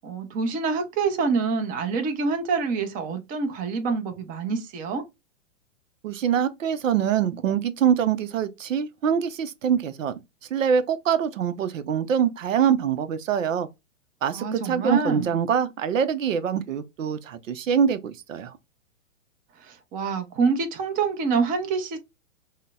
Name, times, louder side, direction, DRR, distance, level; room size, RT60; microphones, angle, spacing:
voice 1, 0.0-5.0 14.3-15.4 19.6-22.0, right 4 dB, 20° right, 0.7 m, -26 dB
voice 2, 6.0-10.2 10.5-13.7 14.2-18.5, right 8 dB, 75° right, 0.7 m, -24 dB
6.4 x 2.2 x 2.3 m
hypercardioid pair, 125°, 39 cm